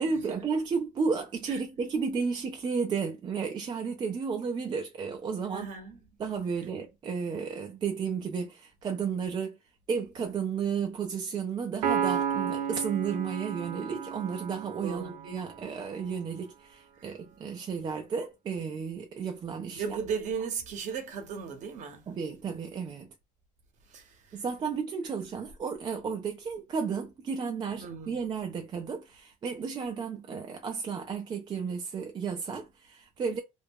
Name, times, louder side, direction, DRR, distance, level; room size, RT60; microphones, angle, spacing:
voice 1, 0.0-5.7 6.2-9.5 9.9-19.8 22.1-23.1 24.3-33.4, right 5 dB, 25° right, 0.4 m, -33 dB
voice 2, 5.5-6.0 14.8-15.4 17.0-17.1 19.7-22.2 23.9-24.4 27.7-28.3, right 6 dB, 45° right, 0.8 m, -37 dB
Piano, 11.8-15.4, right 8 dB, 85° right, 0.7 m, -32 dB
2.3 x 2.1 x 3.4 m
cardioid pair, 125°, 17 cm